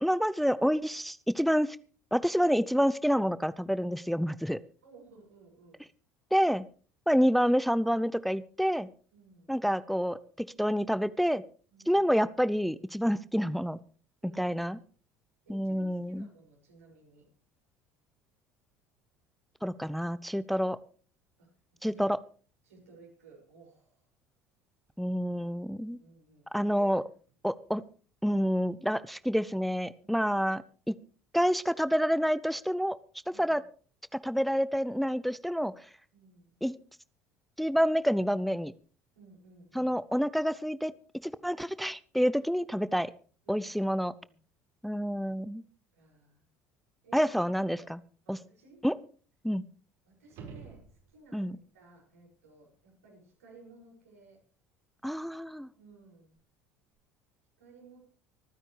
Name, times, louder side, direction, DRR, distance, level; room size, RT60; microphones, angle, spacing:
voice 1, 0.0-1.8 2.1-4.6 6.3-6.7 7.1-8.9 9.5-11.4 11.9-13.8 14.4-14.8 15.5-16.3 19.6-20.8 21.8-22.2 25.0-26.0 26.5-27.0 27.4-27.8 28.2-30.6 30.9-31.0 31.3-33.0 33.4-33.6 34.2-35.9 36.6-36.7 37.6-38.7 39.7-40.9 41.2-43.1 43.5-44.1 44.8-45.6 47.1-48.0 48.3-48.4 48.8-49.0 49.4-49.6 51.3-51.6 55.0-55.7, equal, ahead, 17 dB, 0.6 m, -28 dB
voice 2, 4.8-5.8 9.1-9.5 11.7-12.0 14.2-14.5 15.4-17.3 21.4-21.5 21.8-22.2 22.6-24.1 25.8-27.0 30.0-30.3 33.3-33.6 36.1-36.6 39.1-39.9 42.6-42.9 43.4-44.0 44.2-44.4 45.9-46.5 47.0-47.3 47.7-47.9 48.2-48.8 50.0-54.4 55.8-56.4 57.6-58.0, right 4 dB, 75° right, -1 dB, 6.5 m, -56 dB
sound 1, 50.2-51.5 56.4-56.5, right 5 dB, 55° right, 5.2 m, -48 dB
25.0 x 10.0 x 3.3 m, 0.40 s
figure-of-eight pair, 65°, 8 cm